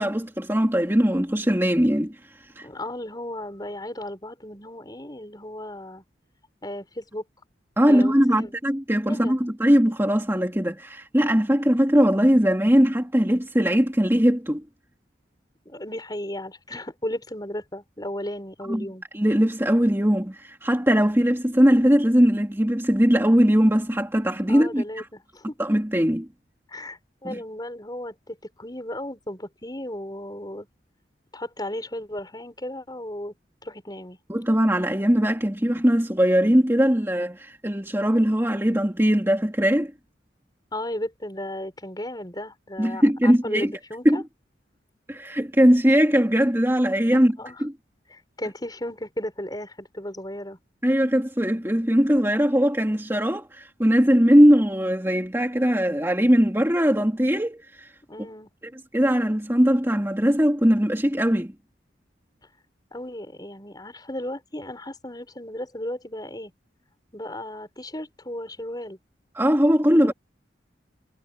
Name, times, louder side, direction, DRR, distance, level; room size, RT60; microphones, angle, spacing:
voice 1, 0.0-2.2 2.6-2.7 7.8-14.6 18.7-18.9 19.1-25.1 25.6-26.3 27.2-27.4 34.3-39.9 42.8-43.7 44.0-44.2 45.1-47.7 50.8-57.9 58.2-58.3 58.9-61.5 69.3-70.1, equal, 15° right, 2.5 m, -20 dB
voice 2, 2.6-6.0 6.6-7.2 7.9-8.5 9.1-9.3 15.7-19.0 24.5-25.5 26.7-30.7 31.3-33.3 33.6-34.2 40.7-44.2 47.1-47.6 48.1-50.6 58.1-58.5 62.9-66.5 67.1-69.0 69.9-70.1, left 1 dB, 20° left, 6.9 m, -35 dB
head